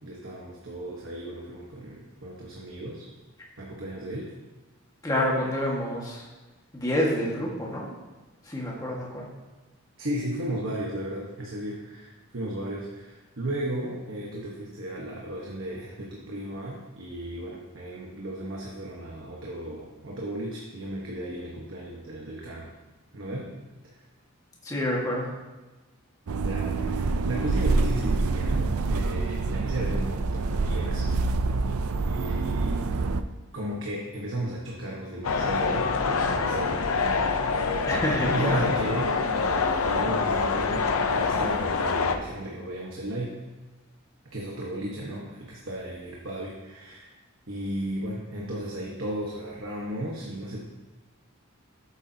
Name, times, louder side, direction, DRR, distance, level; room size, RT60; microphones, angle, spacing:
voice 1, 0.0-3.1 3.6-4.3 10.0-22.7 23.1-23.5 23.9-24.0 26.3-31.1 32.1-32.8 33.5-37.9 38.2-43.4 44.3-47.1 47.5-50.6, right 1 dB, 60° right, -3 dB, 1.2 m, -35 dB
voice 2, 5.0-6.3 6.7-7.9 8.4-9.3 24.6-25.3 37.9-38.6, left 1 dB, 15° left, -3 dB, 1.6 m, -28 dB
sound 1, 26.3-33.2, right 3 dB, 80° right, 0.5 m, -26 dB
sound 2, 35.2-42.2, left 4 dB, 75° left, 0.6 m, -26 dB
12.0 x 8.3 x 2.8 m, 1.2 s
head